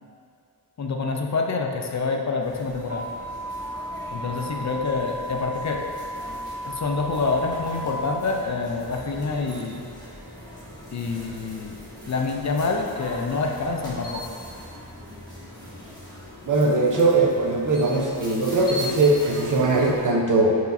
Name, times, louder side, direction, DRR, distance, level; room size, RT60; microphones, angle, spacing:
voice 1, 0.8-3.1 4.1-5.8 6.6-9.8 10.9-11.8 12.1-14.2, left 4 dB, 45° left, 2 dB, 0.5 m, -27 dB
sound 1, 2.4-20.1, left 1 dB, 10° left, 1.4 m, -40 dB
sound 2, 2.9-7.9, right 1 dB, 25° right, 1.0 m, -35 dB
voice 2, 16.5-20.6, right 2 dB, 50° right, -1 dB, 0.9 m, -20 dB
9.2 x 4.7 x 2.7 m, 2.4 s
wide cardioid pair, 145°, 40 cm